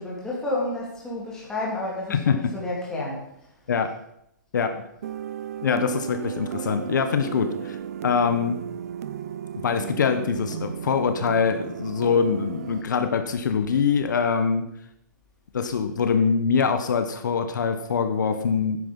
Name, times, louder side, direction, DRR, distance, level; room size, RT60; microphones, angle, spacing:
voice 1, 0.0-3.2, left 2 dB, 5° left, -5 dB, 3.3 m, -30 dB
sound 1, 5.0-12.8, right 9 dB, 50° right, 0.6 m, -34 dB
voice 2, 5.6-7.8 8.0-8.6 9.6-14.7 15.5-18.8, left 6 dB, 70° left, 8 dB, 1.3 m, -23 dB
12.0 x 10.0 x 5.6 m, 0.79 s
hypercardioid pair, 170°, 10 cm